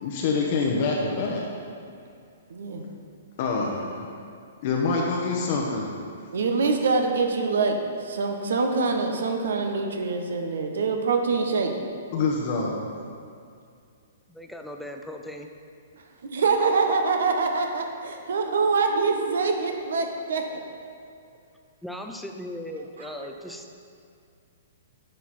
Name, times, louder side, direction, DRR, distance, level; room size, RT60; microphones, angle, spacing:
voice 1, 0.0-1.4 3.4-4.1 4.6-5.9 12.1-12.7, left 4 dB, 45° left, -2 dB, 0.9 m, -26 dB
voice 2, 2.5-2.8 6.3-11.7 15.9-20.6 23.0-23.6, right 4 dB, 65° right, 4 dB, 0.9 m, -25 dB
voice 3, 14.3-15.5 21.8-23.8, left 1 dB, ahead, 3 dB, 0.5 m, -38 dB
9.9 x 4.4 x 4.2 m, 2.3 s
figure-of-eight pair, 120°, 0 cm